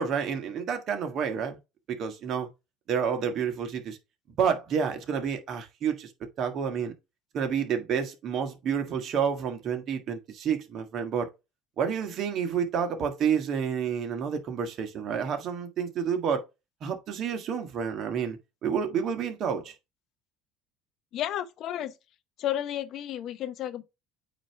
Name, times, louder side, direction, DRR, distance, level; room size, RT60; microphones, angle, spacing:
voice 1, 0.0-1.6 1.9-2.5 2.9-4.0 4.4-6.1 6.4-6.9 7.3-11.3 11.8-16.5 16.8-19.7, right 7 dB, 50° right, 1.6 m, -29 dB
voice 2, 21.1-21.9 22.4-23.8, left 11 dB, 55° left, 0.9 m, -32 dB
8.7 x 3.0 x 4.5 m
supercardioid pair, 105°, 0 cm